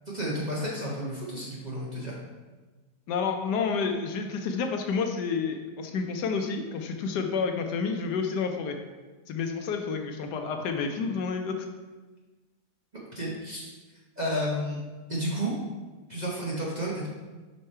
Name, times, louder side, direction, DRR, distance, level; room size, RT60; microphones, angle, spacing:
voice 1, 0.1-2.2 13.1-13.7 14.2-14.8 15.1-15.5 16.1-17.1, equal, 30° right, -5 dB, 0.9 m, -31 dB
voice 2, 3.1-8.8 9.3-11.7, left 5 dB, 75° left, 5 dB, 1.2 m, -29 dB
5.4 x 5.1 x 4.3 m, 1.3 s
omnidirectional pair, 1.9 m